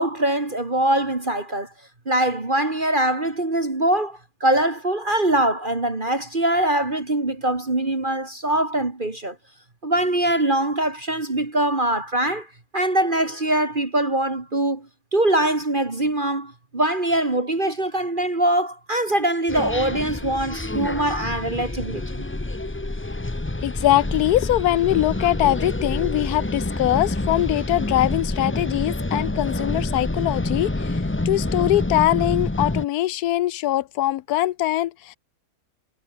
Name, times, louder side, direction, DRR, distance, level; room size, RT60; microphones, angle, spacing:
voice 1, 0.0-1.7 2.1-9.4 9.8-12.5 12.7-14.9 15.1-22.0, right 1 dB, 30° right, 2.5 m, -23 dB
sound 1, 19.5-32.8, left 2 dB, 15° left, 0.5 m, -27 dB
voice 2, 23.6-35.2, left 14 dB, 75° left, 1.1 m, -22 dB
omnidirectional pair, 1.7 m